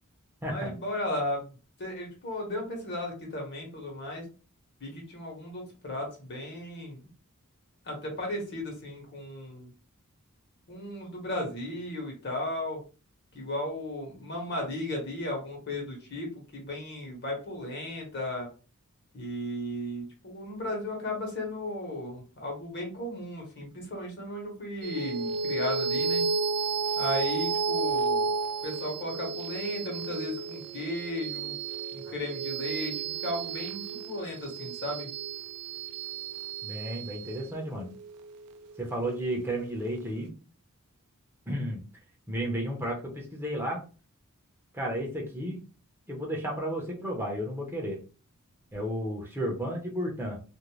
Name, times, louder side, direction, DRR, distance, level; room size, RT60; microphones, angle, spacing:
voice 1, 0.5-1.5 1.8-4.2 4.8-7.1 7.8-9.7 10.7-12.8 13.3-18.5 19.1-26.3 27.0-28.3 28.6-31.5 31.9-35.1, left 1 dB, 50° left, 0 dB, 1.1 m, -35 dB
sound 1, 24.8-39.6, right 4 dB, 85° right, 0.3 m, -32 dB
voice 2, 36.6-37.9 38.8-40.3 41.5-41.8 42.3-43.8 44.7-45.6 46.1-48.0 48.7-50.4, equal, 10° right, -2 dB, 0.6 m, -32 dB
2.5 x 2.1 x 3.0 m, 0.34 s
head